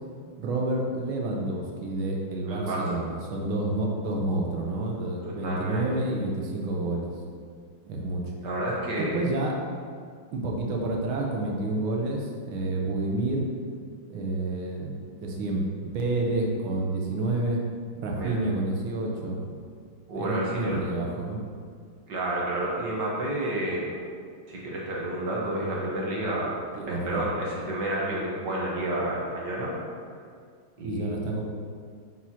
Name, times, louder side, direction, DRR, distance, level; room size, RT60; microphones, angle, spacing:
voice 1, 0.4-7.1 7.9-8.3 9.0-9.6 10.3-13.5 14.1-15.6 15.9-17.6 18.0-19.6 20.1-21.4 26.7-27.3 30.8-31.4, right 2 dB, 80° right, 0 dB, 1.6 m, -29 dB
voice 2, 2.5-2.9 5.2-5.9 8.4-9.2 18.2-18.4 20.1-20.8 22.1-23.9 24.5-26.5 26.9-29.7 30.8-31.1, right 1 dB, 60° right, -4 dB, 1.6 m, -30 dB
6.1 x 5.8 x 2.8 m, 2.1 s
omnidirectional pair, 2.3 m